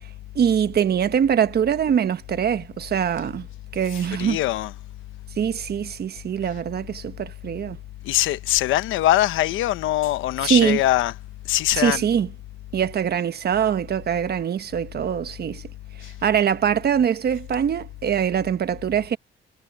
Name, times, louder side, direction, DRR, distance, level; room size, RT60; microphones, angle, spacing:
voice 1, 0.3-3.5 3.7-4.4 5.4-7.8 10.4-10.8 11.8-12.3 12.7-15.6 16.2-19.2, right 8 dB, 55° right, 1.2 m, -23 dB
voice 2, 4.2-4.7 8.0-11.1 11.5-12.0, left 14 dB, 90° left, 1.0 m, -22 dB
cardioid pair, 90°, 20 cm